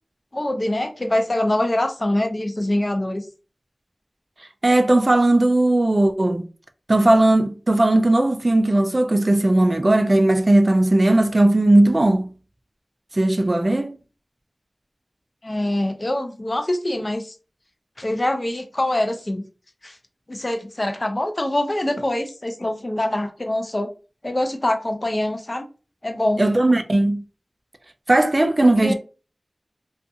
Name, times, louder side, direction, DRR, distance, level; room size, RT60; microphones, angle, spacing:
voice 1, 0.3-3.2 15.4-17.3 18.0-19.5 19.8-20.0 20.3-23.9 24.2-25.7 26.0-26.4 28.6-28.9, left 1 dB, 35° left, 0.5 m, -24 dB
voice 2, 4.6-6.5 6.9-12.3 13.1-14.0 26.4-27.2 28.1-28.9, right 1 dB, 40° right, 0.3 m, -17 dB
2.4 x 2.3 x 2.6 m
wide cardioid pair, 70°, 0 cm